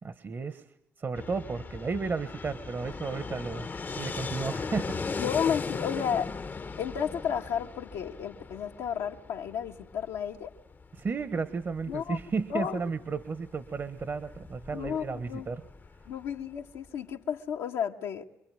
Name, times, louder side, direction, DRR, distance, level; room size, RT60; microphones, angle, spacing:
voice 1, 0.0-0.6 1.0-5.0 11.0-15.6, right 4 dB, 45° right, 11 dB, 1.5 m, -33 dB
Fixed-wing aircraft airplane, 1.1-16.9, left 4 dB, 35° left, 1.0 m, -39 dB
voice 2, 5.2-6.3 6.8-10.5 11.9-12.2 12.5-12.8 14.7-15.5 16.0-18.2, left 8 dB, 80° left, -1 dB, 1.7 m, -32 dB
26.5 x 22.0 x 9.3 m, 0.79 s
hypercardioid pair, 50°, 5 cm